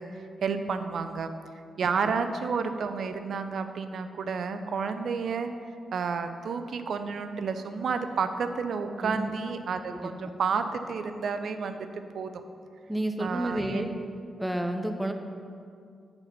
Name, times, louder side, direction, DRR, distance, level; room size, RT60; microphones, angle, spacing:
voice 1, 0.0-1.3 1.8-5.5 5.9-12.4 13.2-14.0, right 5 dB, 70° right, 8 dB, 0.5 m, -31 dB
voice 2, 9.0-9.3 9.9-10.1 12.9-13.9 14.4-15.1, right 1 dB, 5° right, 5 dB, 0.7 m, -30 dB
7.8 x 4.2 x 5.9 m, 2.3 s
supercardioid pair, 45°, 0 cm